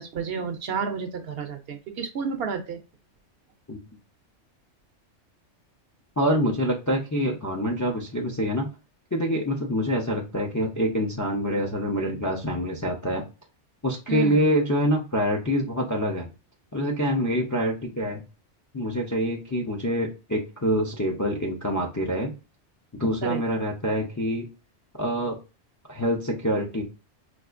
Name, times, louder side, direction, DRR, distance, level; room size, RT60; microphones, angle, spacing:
voice 1, 0.0-2.8 14.1-14.5 23.2-23.4, right 6 dB, 65° right, 7 dB, 0.8 m, -31 dB
voice 2, 6.2-8.7 9.1-13.2 13.8-16.3 16.7-18.2 18.7-22.3 22.9-24.5 25.0-25.4 25.9-26.8, equal, 25° left, 0 dB, 0.4 m, -26 dB
4.1 x 2.4 x 2.4 m, 0.29 s
omnidirectional pair, 1.2 m